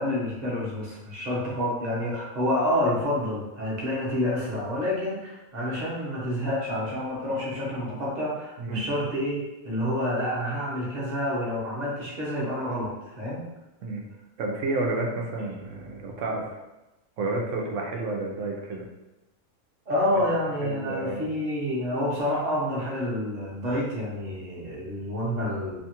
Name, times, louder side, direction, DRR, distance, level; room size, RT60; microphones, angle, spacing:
voice 1, 0.0-13.4 19.9-25.8, left 1 dB, 40° right, -5 dB, 0.8 m, -28 dB
voice 2, 14.4-16.6 17.2-18.8 20.1-20.2 20.6-21.3, right 2 dB, 70° right, 0 dB, 0.9 m, -30 dB
2.8 x 2.3 x 2.8 m, 1.0 s
omnidirectional pair, 1.4 m